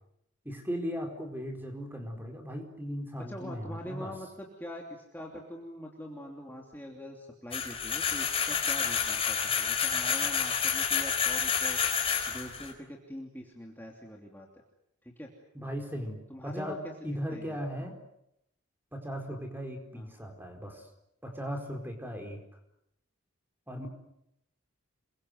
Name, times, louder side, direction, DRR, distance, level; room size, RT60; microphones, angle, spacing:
voice 1, 0.4-4.1 15.5-16.8 17.0-18.0 18.9-20.9 21.2-22.4 23.7-23.9, equal, 10° right, 4 dB, 4.5 m, -37 dB
voice 2, 3.3-11.8 12.3-14.5 15.0-15.3 16.3-16.9 17.3-17.6 19.9-20.1, equal, 10° left, -1 dB, 2.9 m, -44 dB
sound 1, 7.5-12.7, left 7 dB, 25° left, 4.3 m, -29 dB
28.5 x 23.0 x 8.0 m, 0.79 s
head